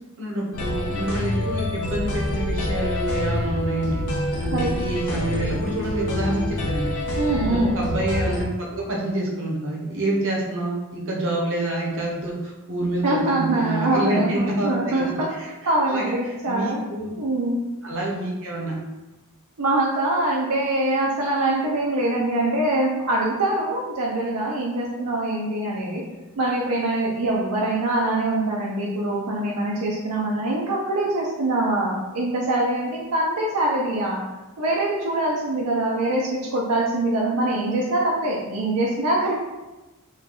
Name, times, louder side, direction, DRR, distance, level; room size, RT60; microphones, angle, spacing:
voice 1, 0.2-4.0 4.4-6.9 7.4-15.5 15.8-17.1 17.8-18.8, right 1 dB, 60° right, -2 dB, 0.8 m, -27 dB
sound 1, 0.5-8.4, left 1 dB, 75° left, 0.6 m, -26 dB
voice 2, 7.2-7.7 13.0-16.8 17.2-17.6 19.6-26.0 26.4-34.2 34.6-39.4, right 2 dB, 85° right, -3 dB, 0.6 m, -24 dB
3.2 x 2.2 x 3.9 m, 1.1 s
head